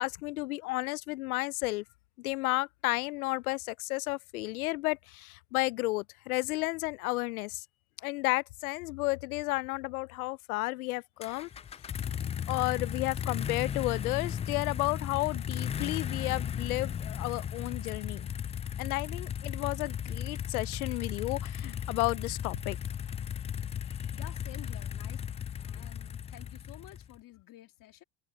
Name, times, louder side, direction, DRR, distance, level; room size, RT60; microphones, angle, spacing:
voice 1, 0.0-1.8 2.2-7.6 8.0-11.5 12.5-18.3 18.8-22.8 25.7-25.9, left 21 dB, 85° left, 0.5 m, -32 dB
sound 1, 11.2-27.2, left 8 dB, 15° left, 0.3 m, -36 dB
voice 2, 24.1-25.2 25.7-28.0, left 15 dB, 50° left, 2.1 m, -51 dB
hypercardioid pair, 90°, 42 cm